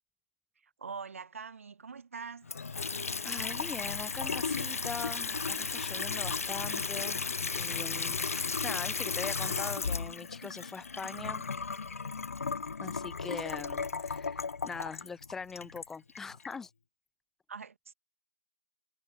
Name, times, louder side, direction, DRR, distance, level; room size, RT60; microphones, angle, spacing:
voice 1, 0.6-2.5 17.5-17.9, right 5 dB, 70° right, 0.9 m, -43 dB
Water tap faucet / Sink (filling or washing) / Trickle dribble, 2.4-16.6, left 5 dB, 80° left, 1.1 m, -35 dB
voice 2, 3.2-7.3 7.5-11.4 12.8-16.7, left 5 dB, 5° left, 0.6 m, -42 dB
hypercardioid pair, 160°, 8 cm